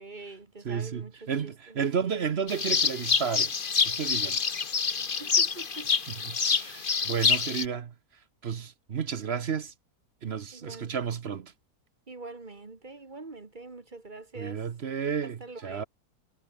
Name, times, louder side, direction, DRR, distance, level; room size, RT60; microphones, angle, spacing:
voice 1, 0.0-2.2 5.2-5.9 10.5-11.0 12.1-14.6 15.2-15.9, right 3 dB, 30° right, 1.7 m, -44 dB
voice 2, 0.6-3.5 3.8-4.4 6.1-7.9 8.4-9.7 10.2-11.5 14.3-15.8, right 7 dB, 45° right, 1.0 m, -32 dB
sound 1, 2.5-7.7, left 5 dB, 35° left, 1.3 m, -27 dB
omnidirectional pair, 1.7 m